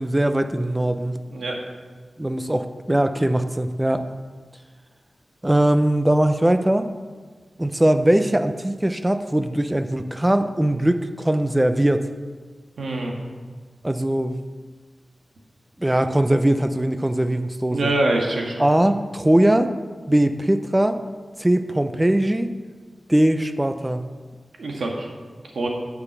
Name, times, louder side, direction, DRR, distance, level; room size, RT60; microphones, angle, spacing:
voice 1, 0.0-1.2 2.2-4.1 5.4-6.9 7.6-12.1 13.8-14.4 15.8-17.9 18.6-19.7 20.1-21.0 21.4-22.5 23.1-24.1, right 1 dB, 15° right, 9 dB, 0.6 m, -20 dB
voice 2, 12.8-13.1 17.7-18.6 24.6-25.1 25.5-25.7, right 2 dB, 85° right, 0 dB, 1.8 m, -24 dB
9.4 x 6.0 x 6.7 m, 1.5 s
wide cardioid pair, 70°, 0 cm